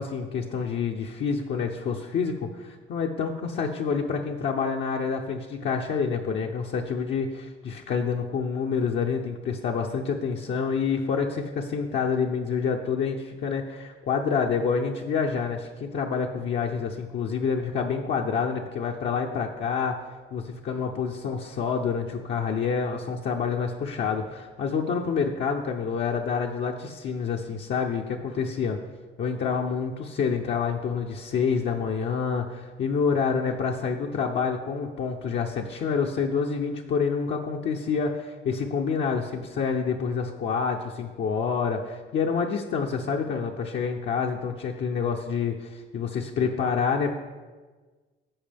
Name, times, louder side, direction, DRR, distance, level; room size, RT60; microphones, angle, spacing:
voice 1, 0.0-19.9 20.3-28.8 29.2-47.1, left 6 dB, 65° left, 0 dB, 0.7 m, -27 dB
14.5 x 5.0 x 3.5 m, 1.3 s
cardioid pair, 90°, 20 cm